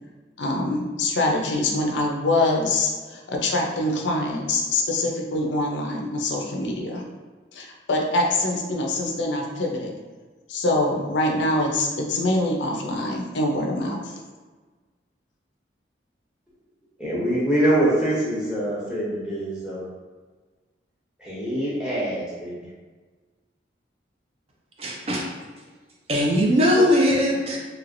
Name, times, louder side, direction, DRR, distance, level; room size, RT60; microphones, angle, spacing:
voice 1, 0.4-7.0 7.5-9.9 10.5-14.0, left 2 dB, 75° left, 0 dB, 0.5 m, -24 dB
voice 2, 17.0-19.8 21.2-22.7, right 1 dB, 5° right, -8 dB, 0.8 m, -24 dB
voice 3, 24.8-25.3 26.1-27.6, equal, 30° right, -2 dB, 0.4 m, -20 dB
3.1 x 2.9 x 2.5 m, 1.4 s
head